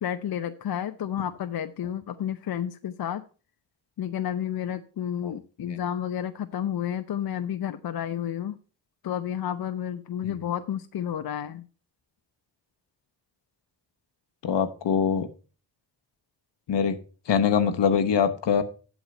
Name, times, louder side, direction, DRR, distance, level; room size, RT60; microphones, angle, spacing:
voice 1, 0.0-3.2 4.0-8.6 9.0-11.6, left 10 dB, 60° left, 8 dB, 0.6 m, -31 dB
voice 2, 14.4-15.3 16.7-17.0 17.3-18.6, left 7 dB, 80° left, 9 dB, 1.1 m, -23 dB
8.0 x 6.5 x 5.3 m, 0.37 s
cardioid pair, 65°, 42 cm